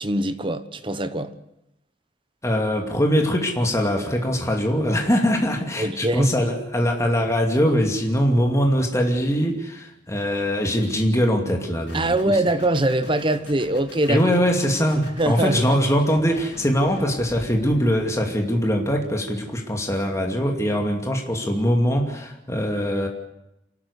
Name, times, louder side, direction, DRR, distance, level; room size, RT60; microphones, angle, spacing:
voice 1, 0.0-1.3 5.8-6.4 11.9-14.2 15.0-15.7, right 1 dB, 30° right, 1.1 m, -23 dB
voice 2, 2.4-12.1 14.1-23.1, equal, 15° left, 2.5 m, -22 dB
sound 1, 11.9-18.2, left 1 dB, 80° left, 6.1 m, -43 dB
27.5 x 12.5 x 8.4 m
head